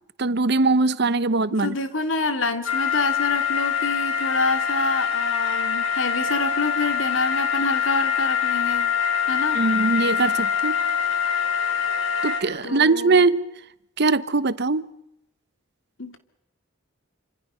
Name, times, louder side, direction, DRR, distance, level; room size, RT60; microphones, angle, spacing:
voice 1, 0.2-1.7 9.5-10.8 12.2-13.4 14.0-14.9, right 3 dB, 55° right, 0.9 m, -21 dB
voice 2, 1.5-8.9 9.3-9.6 12.6-13.2 16.0-16.2, left 3 dB, 70° left, 2.4 m, -27 dB
sound 1, 2.6-12.4, left 8 dB, 85° left, 5.8 m, -24 dB
28.0 x 26.5 x 5.7 m
head